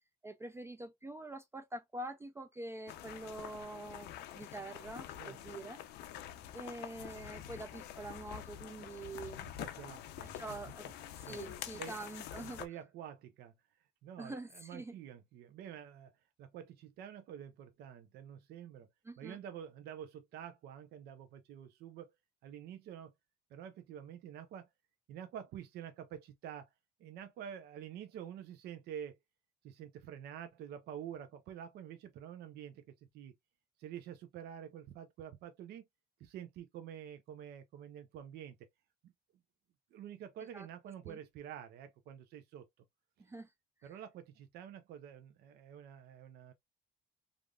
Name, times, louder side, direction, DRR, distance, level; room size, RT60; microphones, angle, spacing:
voice 1, 0.2-5.8 6.5-9.5 10.2-10.9 11.2-12.6 14.2-14.9 19.0-19.4 40.5-40.7 41.1-41.2 43.2-43.5, right 2 dB, 15° right, 0.3 m, -45 dB
sound 1, 2.9-12.7, left 11 dB, 80° left, 0.5 m, -47 dB
voice 2, 5.2-5.6 9.6-10.3 11.3-11.4 11.8-12.1 12.6-13.5 14.0-16.1 16.4-18.9 19.2-22.1 22.4-23.1 23.5-24.7 25.1-26.7 27.0-29.2 29.6-33.3 33.8-35.8 36.2-38.6 39.0-39.1 39.9-42.7 43.8-46.5, right 9 dB, 75° right, 0.5 m, -48 dB
3.3 x 2.5 x 2.2 m
cardioid pair, 110°, 17 cm